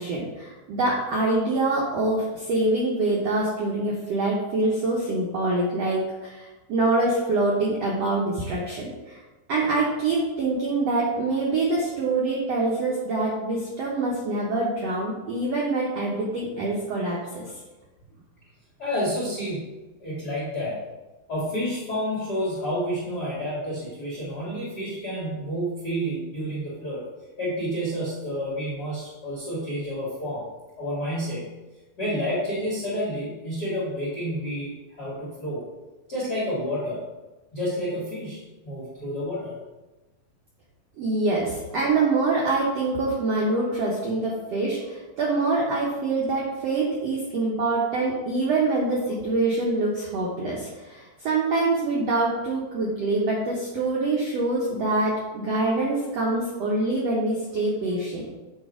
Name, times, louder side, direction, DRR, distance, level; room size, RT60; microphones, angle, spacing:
voice 1, 0.0-9.2 9.5-17.4 41.0-58.3, right 2 dB, 85° right, -4 dB, 1.4 m, -25 dB
voice 2, 18.8-19.7 20.0-20.8 21.3-27.0 27.4-30.4 30.8-31.5 32.0-35.6 36.1-37.0 37.5-39.6, equal, 35° left, -8 dB, 1.7 m, -29 dB
8.5 x 3.3 x 4.9 m, 1.1 s
omnidirectional pair, 4.3 m